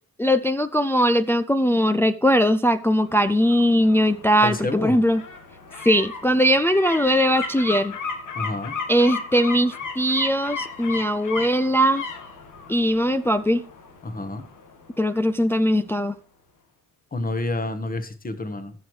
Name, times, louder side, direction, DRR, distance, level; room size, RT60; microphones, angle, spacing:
voice 1, 0.2-5.2 5.8-8.0 8.9-12.0 12.7-13.6 15.0-16.1, equal, 5° left, 0.4 m, -20 dB
sound 1, 2.9-15.7 16.0-16.1, left 5 dB, 65° left, 1.7 m, -36 dB
voice 2, 4.4-5.0 8.3-8.7 14.0-14.4 17.1-18.7, left 2 dB, 25° left, 1.4 m, -28 dB
14.0 x 6.2 x 3.3 m
cardioid pair, 70°, 33 cm